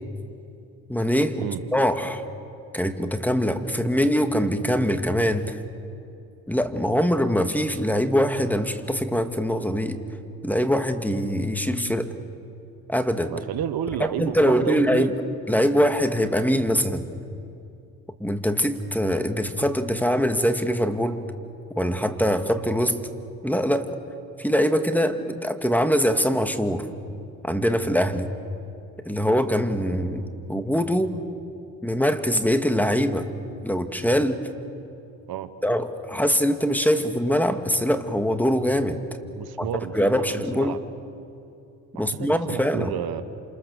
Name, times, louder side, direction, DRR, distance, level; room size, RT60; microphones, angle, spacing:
voice 1, 0.9-2.2 2.7-5.6 6.5-10.0 10.4-12.1 12.9-13.3 14.0-15.1 15.5-17.1 18.2-21.2 21.8-23.0 23.4-23.9 24.4-26.9 27.4-28.3 29.0-30.2 30.5-31.2 31.8-33.2 33.6-34.4 35.6-39.0 39.6-39.7 39.9-40.8 42.0-42.9, equal, 5° left, 7 dB, 2.4 m, -23 dB
voice 2, 13.3-15.1 35.3-35.5 39.3-40.8 41.9-43.2, right 10 dB, 70° right, 11 dB, 1.3 m, -31 dB
28.0 x 27.5 x 7.2 m, 2.6 s
hypercardioid pair, 50°, 39 cm